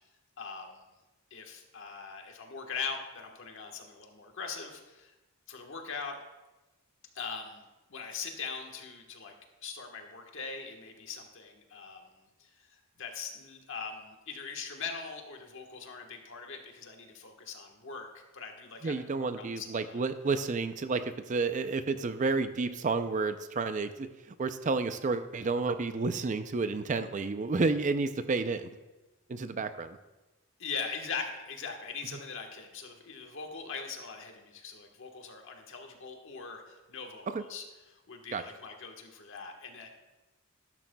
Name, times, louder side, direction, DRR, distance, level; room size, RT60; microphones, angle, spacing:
voice 1, 0.4-0.8 1.3-5.1 5.5-6.1 7.1-7.6 7.9-9.3 9.6-12.1 12.4-12.5 13.0-18.1 18.3-20.0 30.6-39.9, left 5 dB, 60° left, 3 dB, 1.3 m, -41 dB
voice 2, 18.8-24.1 24.4-28.7 29.3-30.0 37.3-37.4 38.3-38.4, right 4 dB, 35° right, 11 dB, 0.4 m, -30 dB
12.5 x 12.0 x 2.2 m, 1.1 s
head